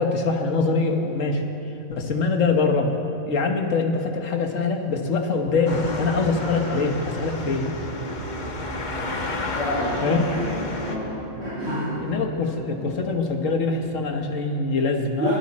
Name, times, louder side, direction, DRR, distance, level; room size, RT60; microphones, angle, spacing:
voice 1, 0.0-1.4 1.9-2.9 3.3-7.7 10.0-10.3 12.0-15.3, left 4 dB, 60° left, 4 dB, 1.5 m, -23 dB
sound 1, 5.4-14.4, right 3 dB, 35° right, 1.5 m, -38 dB
sound 2, 5.7-11.0, left 3 dB, 35° left, 1.1 m, -31 dB
voice 2, 9.5-10.5 10.8-11.1 11.4-11.9 15.2-15.3, left 1 dB, 55° right, -11 dB, 4.5 m, -28 dB
21.0 x 12.5 x 4.2 m, 2.9 s
omnidirectional pair, 1.5 m